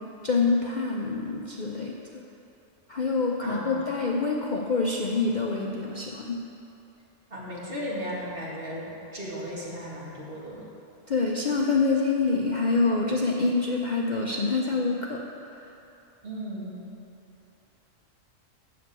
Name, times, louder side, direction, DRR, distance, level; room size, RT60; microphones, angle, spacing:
voice 1, 0.2-2.2 2.9-6.4 11.1-15.2 15.6-15.7, left 3 dB, 45° left, -1 dB, 0.6 m, -26 dB
voice 2, 3.4-3.8 7.3-10.6 16.2-16.8, equal, 45° right, -7 dB, 2.4 m, -36 dB
7.5 x 7.0 x 8.2 m, 2.8 s
omnidirectional pair, 1.4 m